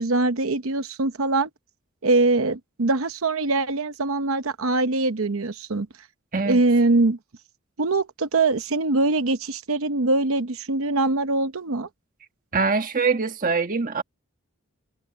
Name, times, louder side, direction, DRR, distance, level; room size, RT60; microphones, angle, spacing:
voice 1, 0.0-1.5 2.0-5.9 6.5-7.2 7.8-11.9, right 2 dB, 70° right, 0.9 m, -23 dB
voice 2, 12.5-14.0, right 4 dB, 40° right, 1.4 m, -23 dB
head